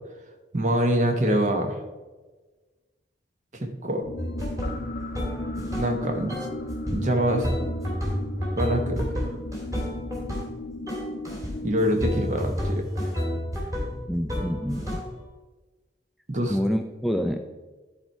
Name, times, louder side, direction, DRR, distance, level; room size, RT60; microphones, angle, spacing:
voice 1, 0.5-1.8 3.5-4.0 5.6-6.3 6.9-7.5 8.6-9.3 11.6-13.1 16.3-16.6, equal, 45° right, 4 dB, 1.1 m, -25 dB
sound 1, 4.0-12.1, left 1 dB, 55° left, 0.5 m, -36 dB
sound 2, 4.2-6.0 6.3-10.6 10.9-11.6 12.0-15.2, equal, 20° right, 2.2 m, -30 dB
voice 2, 14.1-15.0 16.5-17.4, equal, ahead, 5 dB, 0.3 m, -27 dB
10.5 x 4.4 x 4.6 m, 1.2 s
head